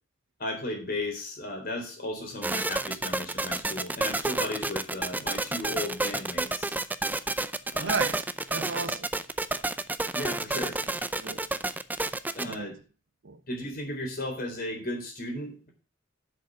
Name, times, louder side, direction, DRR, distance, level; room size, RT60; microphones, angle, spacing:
voice 1, 0.4-6.8 7.7-8.0 10.1-10.8 12.3-12.8 13.5-15.7, left 1 dB, 50° left, 4.0 m, -35 dB
sound 1, 2.4-12.5, right 2 dB, 10° right, 0.5 m, -30 dB
voice 2, 7.8-9.1 10.5-10.6 11.2-11.5 12.4-12.7 13.2-13.4, right 4 dB, 75° right, 0.8 m, -34 dB
7.6 x 6.5 x 7.3 m
head